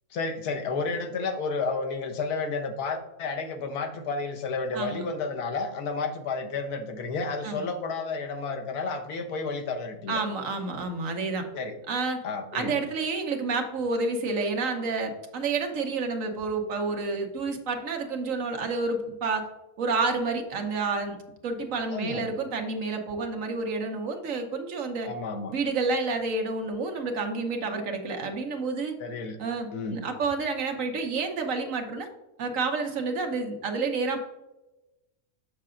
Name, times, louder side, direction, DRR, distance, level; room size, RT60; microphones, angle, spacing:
voice 1, 0.1-10.2 11.5-11.8 12.2-12.8 21.9-22.3 25.1-25.6 29.0-29.4 29.7-30.0, left 4 dB, 85° left, 5 dB, 1.4 m, -31 dB
voice 2, 10.1-11.5 11.9-12.2 12.5-19.5 19.8-21.2 21.4-25.1 25.5-28.9 29.4-32.1 32.4-34.2, right 3 dB, 65° right, 4 dB, 1.2 m, -29 dB
6.7 x 6.6 x 2.5 m, 0.98 s
omnidirectional pair, 1.6 m